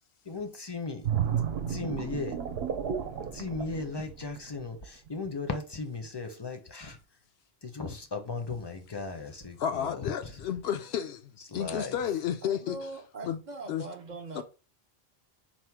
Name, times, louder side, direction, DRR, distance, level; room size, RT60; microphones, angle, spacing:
voice 1, 0.2-1.1 1.7-2.4 3.3-7.0 7.6-10.4 11.5-12.0, left 3 dB, 35° left, 0.5 m, -36 dB
sound 1, 1.0-4.6 5.1-5.3, right 8 dB, 75° right, 0.8 m, -32 dB
voice 2, 9.6-11.2 11.5-12.8 13.2-13.4 13.7-13.9 14.3-14.4, left 9 dB, 80° left, 0.8 m, -31 dB
voice 3, 12.4-14.4, right 2 dB, 55° right, 0.6 m, -41 dB
4.2 x 2.1 x 4.5 m
omnidirectional pair, 1.1 m